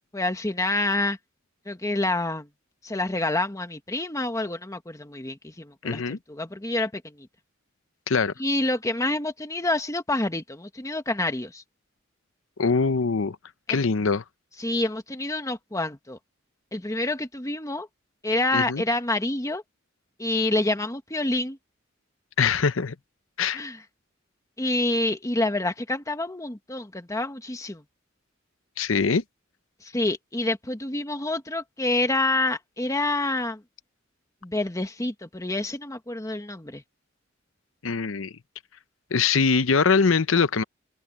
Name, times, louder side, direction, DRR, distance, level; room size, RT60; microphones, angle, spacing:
voice 1, 0.1-1.2 1.7-2.5 2.8-7.3 8.4-11.6 13.7-13.8 14.6-16.2 16.7-17.9 18.2-19.6 20.2-21.6 23.5-23.8 24.6-27.8 29.8-33.6 34.4-36.8, left 2 dB, 15° left, 1.4 m, -27 dB
voice 2, 5.8-6.2 8.1-8.3 12.6-13.4 13.7-14.2 18.5-18.8 22.4-22.9 23.4-23.6 28.8-29.2 37.8-38.3 39.1-40.6, left 5 dB, 75° left, 0.8 m, -22 dB
head